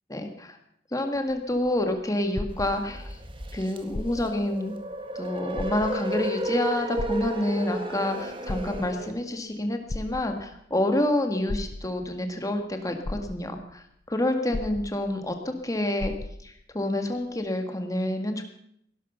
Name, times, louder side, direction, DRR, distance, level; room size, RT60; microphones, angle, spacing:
voice 1, 0.1-0.6 0.9-3.2 3.5-4.7 5.2-16.1 16.4-18.4, left 1 dB, 20° left, 5 dB, 1.8 m, -28 dB
sound 1, 1.1-3.2 3.8-4.5 4.9-5.0 5.5-6.2 7.0-7.8 8.3-9.2 9.9-10.6 11.5-12.2 12.7-12.8 13.0-13.8 14.5-15.3 15.6-15.7 16.0-16.6 17.3-17.4, left 2 dB, 50° left, 0.7 m, -35 dB
sound 2, 2.5-9.1, right 1 dB, 30° right, 1.6 m, -33 dB
17.5 x 11.5 x 5.6 m, 0.71 s
head